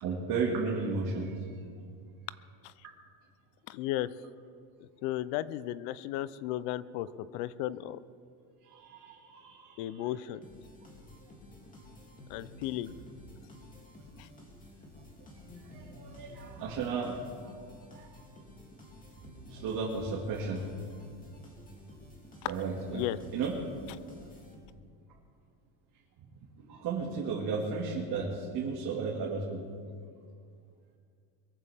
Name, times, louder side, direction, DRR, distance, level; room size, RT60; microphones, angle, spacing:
voice 1, 0.0-1.5 8.6-10.1 15.7-17.2 17.9-18.1 19.2-20.7 22.5-23.6 26.2-29.6, right 4 dB, 45° right, -3 dB, 2.2 m, -34 dB
voice 2, 3.7-4.1 5.0-8.0 9.8-10.4 12.3-12.9 22.9-23.2, left 14 dB, 70° left, 17 dB, 0.7 m, -34 dB
sound 1, 10.4-25.0, left 1 dB, 15° left, 2.7 m, -51 dB
22.5 x 14.5 x 3.5 m, 2.2 s
cardioid pair, 150°, 46 cm